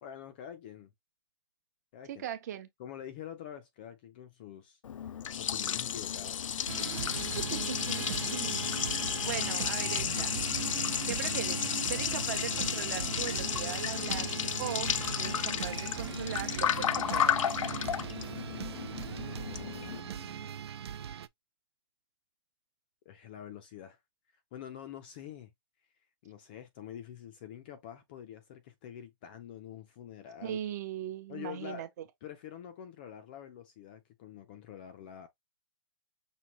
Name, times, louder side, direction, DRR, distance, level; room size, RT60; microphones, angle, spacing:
voice 1, 0.0-0.9 1.9-2.2 2.8-4.8 5.1-6.4 19.4-20.8 23.1-24.0 24.5-25.5 26.2-30.6 31.3-31.9 32.2-35.3, left 10 dB, 20° left, 0.4 m, -46 dB
voice 2, 2.1-2.7 7.1-8.8 9.2-10.3 11.1-14.3 14.6-17.5 30.4-31.9, right 10 dB, 35° right, 0.8 m, -39 dB
Liquid, 4.8-20.0, left 9 dB, 80° left, 0.5 m, -33 dB
sound 1, 6.7-21.3, right 9 dB, 55° right, 0.4 m, -39 dB
5.9 x 2.7 x 3.0 m
hypercardioid pair, 170°, 16 cm